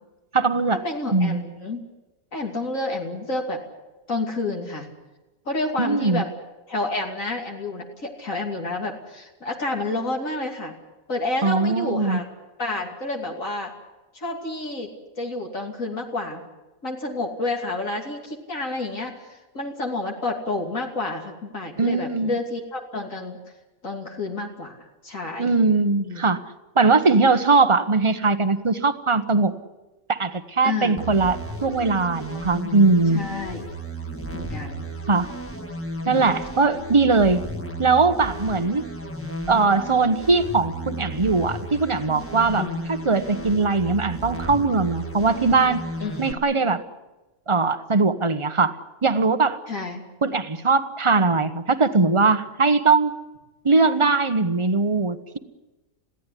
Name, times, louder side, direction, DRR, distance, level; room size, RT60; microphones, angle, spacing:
voice 1, 0.3-0.8 1.1-1.4 5.8-6.2 11.4-12.2 21.8-22.3 25.4-26.4 26.7-29.6 30.1-33.2 35.1-35.3 36.0-37.4 37.8-38.8 39.5-45.8 46.2-46.8 47.5-48.8 49.0-49.6 50.2-53.1 53.6-55.4, right 3 dB, 25° right, 10 dB, 1.1 m, -20 dB
voice 2, 0.8-1.8 2.3-3.6 4.1-4.9 5.5-6.3 6.7-10.7 11.1-12.2 12.6-13.7 14.1-14.9 15.2-16.4 16.8-23.4 23.8-25.5 26.0-26.2 30.6-31.0 33.1-33.7 34.3-34.9 36.1-36.4 42.6-42.8 46.0-46.4 49.7-50.0, left 2 dB, 70° left, 1 dB, 3.2 m, -29 dB
sound 1, 31.0-46.3, right 1 dB, 10° left, 1.5 m, -34 dB
22.0 x 16.5 x 9.9 m, 1.1 s
omnidirectional pair, 1.4 m